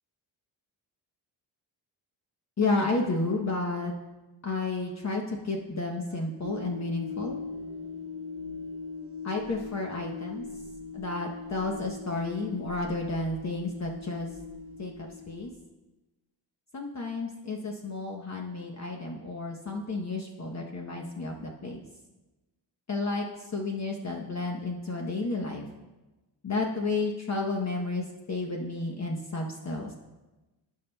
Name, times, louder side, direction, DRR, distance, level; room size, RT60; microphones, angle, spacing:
voice 1, 2.6-3.9 4.4-7.4 9.2-10.5 10.9-14.3 14.8-14.9 15.3-15.5 16.7-21.8 22.9-23.3 23.5-25.7 26.4-29.9, left 3 dB, 35° left, 1 dB, 0.9 m, -31 dB
sound 1, 6.4-15.5, left 4 dB, 30° right, 0.9 m, -40 dB
16.0 x 5.4 x 2.2 m, 1.1 s
cardioid pair, 85°, 45 cm